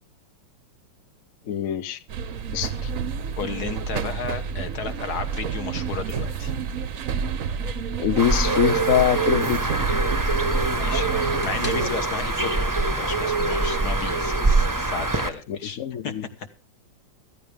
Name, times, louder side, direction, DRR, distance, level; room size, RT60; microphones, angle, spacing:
voice 1, 1.5-2.0 2.5-2.9 8.0-9.7 15.5-16.2, left 10 dB, 70° left, 13 dB, 0.7 m, -24 dB
sound 1, 2.1-11.9, right 7 dB, 55° right, 1.0 m, -30 dB
voice 2, 3.4-6.5 10.7-15.8 16.0-16.5, left 6 dB, 50° left, 11 dB, 1.8 m, -33 dB
Bird, 8.2-15.3, right 3 dB, 15° right, 0.7 m, -24 dB
sound 2, 11.4-14.3, left 2 dB, 25° left, 1.8 m, -44 dB
15.0 x 14.5 x 3.5 m, 0.33 s
omnidirectional pair, 2.4 m